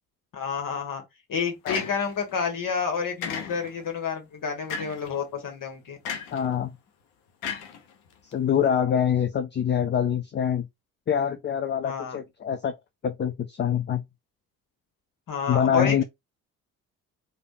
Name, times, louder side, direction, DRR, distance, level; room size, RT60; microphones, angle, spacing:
voice 1, 0.3-1.0 1.3-6.0 11.8-12.2 15.3-16.0, left 6 dB, 50° left, 1.5 m, -29 dB
sound 1, 1.7-2.3 3.2-3.9 4.7-5.1 6.0-6.5 7.4-8.3, left 7 dB, 80° left, 0.8 m, -34 dB
voice 2, 6.3-6.7 8.2-10.7 11.1-12.7 13.0-14.0 15.5-16.0, left 8 dB, 30° left, 0.4 m, -25 dB
3.3 x 2.6 x 2.6 m
hypercardioid pair, 45°, 41 cm